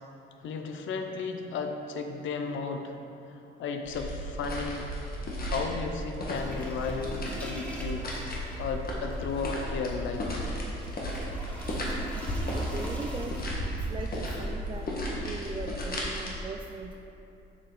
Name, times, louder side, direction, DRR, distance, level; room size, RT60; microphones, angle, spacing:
voice 1, 0.4-3.0 3.3-4.9 5.4-10.4, left 5 dB, 75° left, 5 dB, 0.7 m, -34 dB
sound 1, 3.8-16.3, equal, 50° left, 1.5 m, -34 dB
sound 2, 6.3-15.6, equal, 5° left, 1.4 m, -44 dB
voice 2, 12.5-13.4 13.7-14.9 15.2-16.9, right 3 dB, 25° right, 2 dB, 0.4 m, -39 dB
7.5 x 6.5 x 3.9 m, 2.8 s
cardioid pair, 90°, 20 cm